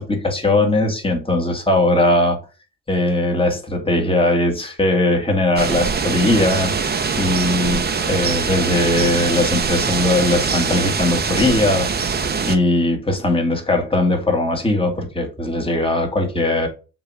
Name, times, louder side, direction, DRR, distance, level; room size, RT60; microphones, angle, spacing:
voice 1, 0.0-2.4 2.9-12.2 12.5-16.7, left 2 dB, 20° left, 1.9 m, -19 dB
sound 1, 5.6-12.6, right 5 dB, 30° right, 1.0 m, -22 dB
7.3 x 3.0 x 4.8 m
cardioid pair, 90°, 30 cm